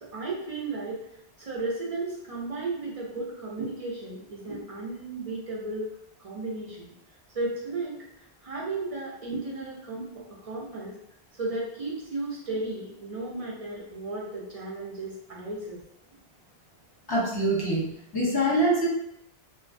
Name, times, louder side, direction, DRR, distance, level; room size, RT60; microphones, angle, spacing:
voice 1, 0.0-1.0 1.4-5.9 6.2-6.9 7.3-11.0 11.4-15.8, right 2 dB, 55° right, -4 dB, 0.4 m, -34 dB
voice 2, 17.1-18.9, right 1 dB, 25° left, -5 dB, 0.6 m, -25 dB
2.5 x 2.1 x 2.5 m, 0.78 s
omnidirectional pair, 1.1 m